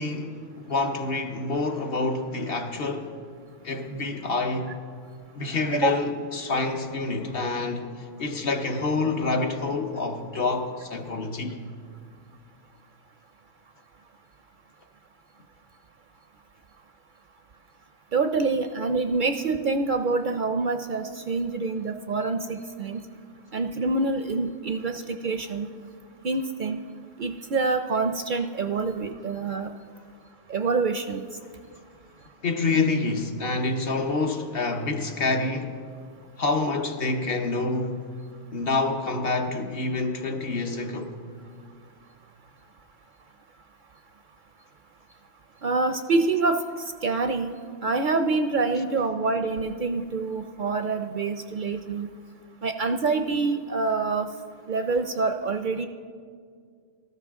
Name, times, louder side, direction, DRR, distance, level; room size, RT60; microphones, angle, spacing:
voice 1, 0.0-3.2 3.6-4.8 5.3-11.6 32.4-35.8 36.4-38.0 38.5-41.1, left 3 dB, 60° left, 1.1 m, -27 dB
voice 2, 18.1-23.0 23.5-25.7 26.2-26.8 27.2-29.7 30.5-31.2 45.6-46.6 47.0-47.6 47.8-52.1 52.6-54.3 54.7-55.9, right 3 dB, 55° right, 0.6 m, -26 dB
18.5 x 13.5 x 3.6 m
omnidirectional pair, 1.1 m